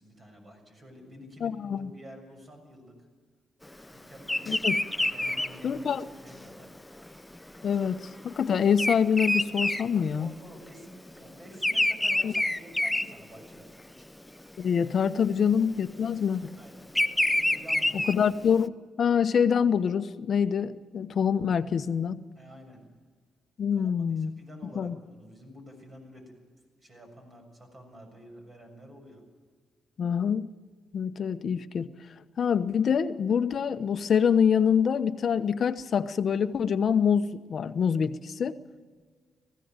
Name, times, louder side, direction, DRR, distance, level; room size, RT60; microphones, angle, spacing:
voice 1, 0.0-3.0 3.9-4.7 5.1-6.7 10.2-14.1 16.6-16.8 17.5-18.2 22.3-22.8 23.7-26.4 26.8-29.2, equal, 35° right, 3 dB, 6.8 m, -49 dB
voice 2, 1.4-1.9 4.5-4.8 5.6-6.0 7.6-10.3 12.2-12.3 14.6-16.5 17.9-18.7 19.0-22.2 23.6-24.3 24.7-24.9 30.0-30.5 30.9-31.9 32.4-38.6, left 7 dB, 55° left, 10 dB, 1.0 m, -25 dB
Bird vocalization bird call bird song, 4.2-10.7 10.9-13.8 14.3-14.6 15.6-18.6, left 1 dB, 10° left, 0.7 m, -28 dB
20.0 x 16.0 x 9.0 m, 1.5 s
cardioid pair, 100°, 0 cm